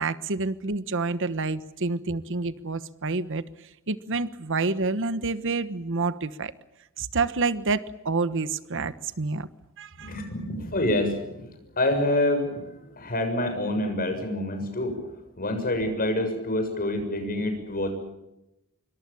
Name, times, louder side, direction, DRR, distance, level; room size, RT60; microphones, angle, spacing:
voice 1, 0.0-3.4 3.9-6.5 7.0-9.5 9.8-10.1, right 3 dB, 60° right, 14 dB, 1.2 m, -28 dB
voice 2, 10.0-17.9, left 1 dB, 45° left, 7 dB, 6.8 m, -27 dB
26.5 x 24.0 x 7.1 m, 0.90 s
head